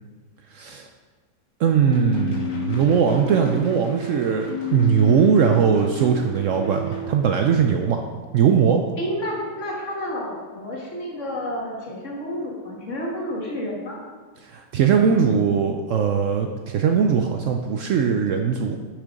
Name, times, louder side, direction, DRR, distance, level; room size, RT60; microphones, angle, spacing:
voice 1, 0.5-0.9 1.6-8.0 8.3-8.8 14.5-18.8, right 7 dB, 80° right, 4 dB, 0.6 m, -20 dB
sound 1, 1.9-7.1, left 3 dB, 70° left, 1.8 m, -31 dB
voice 2, 9.0-14.0, equal, 45° left, -2 dB, 1.7 m, -30 dB
6.7 x 6.2 x 5.1 m, 1.5 s
omnidirectional pair, 1.9 m